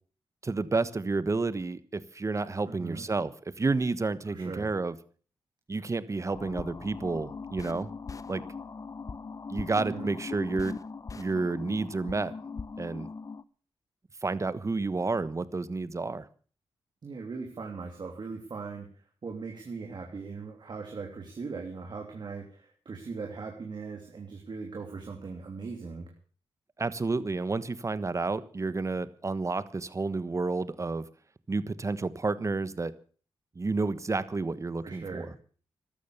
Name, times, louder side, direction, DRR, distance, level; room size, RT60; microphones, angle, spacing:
voice 1, 0.4-4.9 5.7-7.9 8.3-8.4 9.5-10.8 11.1-12.3 12.8-13.1 14.2-16.3 26.8-31.1 31.5-32.9 33.5-35.3, right 3 dB, 30° right, 16 dB, 1.3 m, -30 dB
voice 2, 2.7-3.0 4.2-4.7 9.7-10.1 17.0-18.9 19.2-26.1 34.8-35.3, right 4 dB, 50° right, 2 dB, 3.1 m, -39 dB
sound 1, 6.3-13.4, left 5 dB, 35° left, 0.7 m, -40 dB
14.0 x 12.5 x 6.8 m, 0.42 s
cardioid pair, 70°, 9 cm